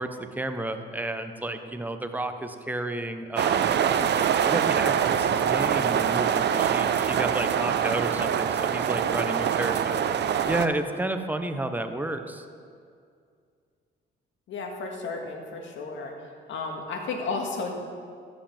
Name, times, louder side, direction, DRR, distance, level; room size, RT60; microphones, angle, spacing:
voice 1, 0.0-4.1 4.4-10.0 10.5-12.4, right 2 dB, 10° right, 7 dB, 0.9 m, -31 dB
sound 1, 3.4-10.7, right 8 dB, 60° right, 0.6 m, -24 dB
voice 2, 14.5-16.1 16.5-17.7, left 3 dB, 75° left, 2 dB, 1.8 m, -33 dB
14.0 x 5.2 x 7.3 m, 2.2 s
cardioid pair, 90°, 20 cm